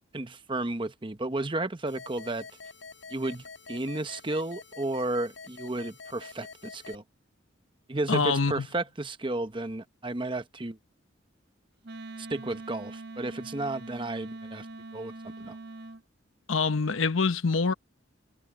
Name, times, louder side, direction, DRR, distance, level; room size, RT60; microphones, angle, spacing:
voice 1, 0.1-2.5 3.1-7.0 7.9-10.8 12.2-14.7 14.9-15.6, right 2 dB, 25° right, 0.9 m, -33 dB
sound 1, 1.9-7.0, left 4 dB, 70° left, 6.0 m, -47 dB
voice 2, 8.1-8.7 16.5-17.7, left 4 dB, 85° left, 0.9 m, -25 dB
Wind instrument woodwind instrument, 11.8-16.0, right 2 dB, 55° right, 0.6 m, -43 dB
head